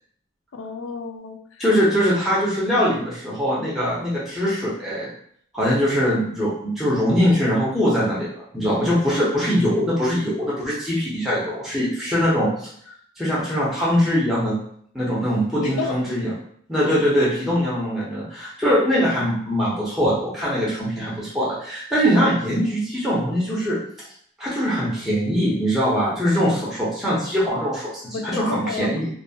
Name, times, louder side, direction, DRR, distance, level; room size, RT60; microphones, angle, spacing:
voice 1, 0.5-1.6 15.6-16.0 28.1-28.9, left 4 dB, 75° left, 5 dB, 0.4 m, -31 dB
voice 2, 1.6-5.1 5.5-12.7 13.2-14.6 14.9-16.3 16.7-23.8 24.4-29.1, equal, ahead, -7 dB, 0.6 m, -22 dB
2.5 x 2.2 x 2.6 m, 0.64 s
head